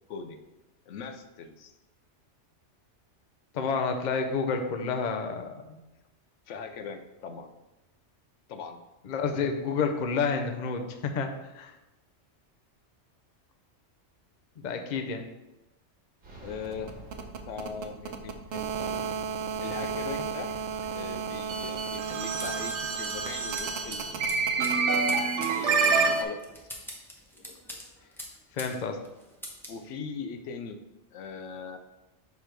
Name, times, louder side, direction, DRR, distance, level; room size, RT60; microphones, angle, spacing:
voice 1, 0.1-0.4 0.9-1.7 6.5-7.5 8.5-8.8 9.3-9.5 16.4-16.9 17.5-19.0 19.6-20.5 20.9-24.2 25.5-26.6 29.7-30.8 31.1-31.8, left 5 dB, 85° left, 7 dB, 0.9 m, -40 dB
voice 2, 3.5-5.8 9.0-11.7 14.6-15.2 27.5-27.6 28.5-29.0, left 5 dB, 50° left, 5 dB, 0.6 m, -30 dB
sound 1, 16.2-18.4, right 1 dB, 45° right, 1.5 m, -48 dB
sound 2, 16.7-26.2, right 5 dB, 75° right, 0.9 m, -29 dB
sound 3, 22.4-28.8 29.0-29.8, equal, ahead, 0.8 m, -44 dB
6.6 x 3.5 x 4.5 m, 0.99 s
omnidirectional pair, 1.2 m